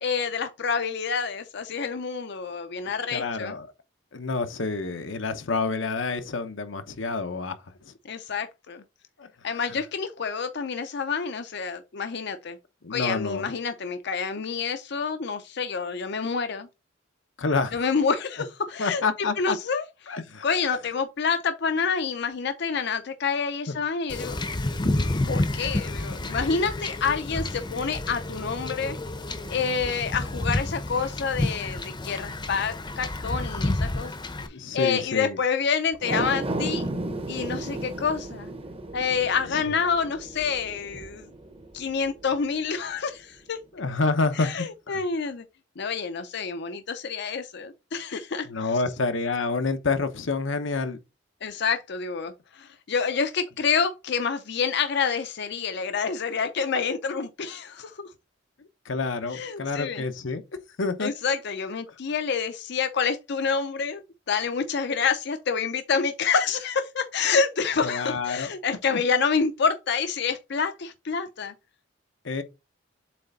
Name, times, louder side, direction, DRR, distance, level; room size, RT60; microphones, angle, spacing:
voice 1, 0.0-3.6 8.0-8.8 9.4-12.6 12.9-16.7 17.7-19.8 20.4-24.3 25.3-29.0 29.5-34.1 34.5-36.9 37.3-38.5 38.9-41.3 41.7-43.6 44.4-45.4 45.8-48.7 51.4-58.1 59.3-60.0 61.0-64.0 64.3-71.5, left 5 dB, 60° left, 0.6 m, -28 dB
voice 2, 3.1-3.7 4.1-7.6 7.8-7.9 9.2-9.8 12.8-13.5 17.4-17.7 18.8-19.6 20.1-20.4 23.7-23.8 32.1-32.2 34.4-35.4 39.5-39.6 43.7-45.0 48.4-51.0 58.8-60.4 60.8-61.1 67.8-68.5 68.9-69.0 72.2-72.4, left 3 dB, 85° left, 0.9 m, -28 dB
Wind / Ocean / Boat Water vehicle, 24.1-34.5, left 1 dB, 25° left, 0.7 m, -30 dB
sound 1, 35.9-42.4 42.9-43.0, right 2 dB, 30° right, 0.9 m, -34 dB
7.6 x 3.3 x 4.0 m
head